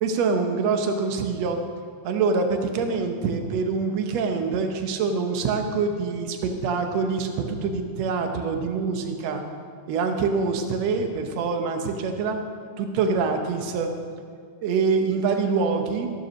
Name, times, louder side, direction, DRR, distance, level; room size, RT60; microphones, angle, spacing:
voice 1, 0.0-1.6 2.0-9.4 9.9-12.4 12.8-13.9 14.6-16.1, right 4 dB, 65° right, 5 dB, 1.9 m, -25 dB
14.5 x 7.3 x 6.3 m, 2.1 s
omnidirectional pair, 3.7 m